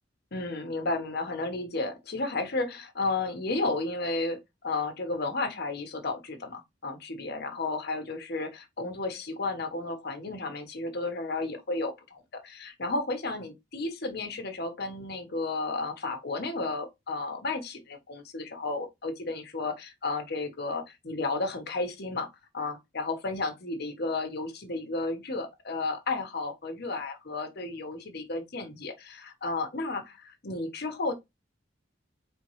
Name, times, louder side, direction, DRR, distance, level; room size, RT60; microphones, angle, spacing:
voice 1, 0.3-31.1, left 3 dB, 60° left, 1.2 m, -33 dB
4.5 x 3.6 x 3.1 m
head